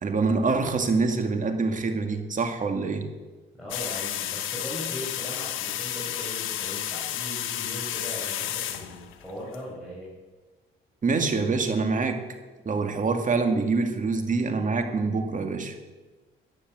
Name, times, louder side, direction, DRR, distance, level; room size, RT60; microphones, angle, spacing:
voice 1, 0.0-3.1 11.0-12.2 12.7-15.8, right 4 dB, 40° right, 5 dB, 2.3 m, -25 dB
voice 2, 3.5-10.1, equal, ahead, -7 dB, 6.5 m, -39 dB
sound 1, 3.7-9.6, left 11 dB, 90° left, 1.2 m, -32 dB
14.0 x 9.9 x 7.7 m, 1.3 s
cardioid pair, 90°, 20 cm